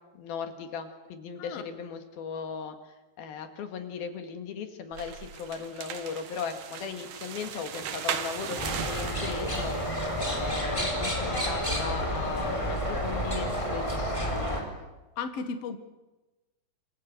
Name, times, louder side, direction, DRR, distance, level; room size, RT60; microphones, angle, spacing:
voice 1, 0.1-14.7, left 6 dB, 65° left, 7 dB, 3.5 m, -38 dB
sound 1, 4.9-10.5, right 8 dB, 60° right, 2.7 m, -38 dB
sound 2, 8.6-14.6, equal, 5° left, 4.0 m, -30 dB
voice 2, 15.2-15.8, left 5 dB, 50° left, 8 dB, 2.0 m, -34 dB
27.5 x 24.5 x 6.7 m, 1.1 s
omnidirectional pair, 4.8 m